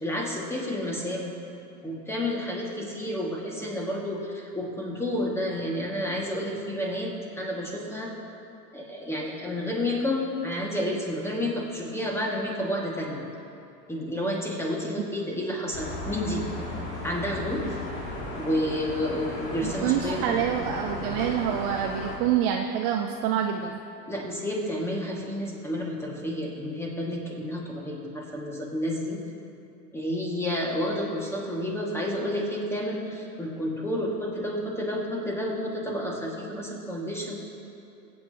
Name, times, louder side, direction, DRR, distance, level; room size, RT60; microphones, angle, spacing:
voice 1, 0.0-1.3 1.8-8.1 8.7-13.2 13.9-16.5 17.0-17.7 18.4-20.4 24.1-29.2 29.9-37.5, left 1 dB, 5° left, -2 dB, 2.0 m, -30 dB
sound 1, 15.7-22.2, left 2 dB, 25° left, 2.7 m, -35 dB
voice 2, 19.6-23.8, right 9 dB, 40° right, 3 dB, 0.6 m, -27 dB
21.0 x 8.9 x 3.0 m, 2.7 s
hypercardioid pair, 100°, 50 cm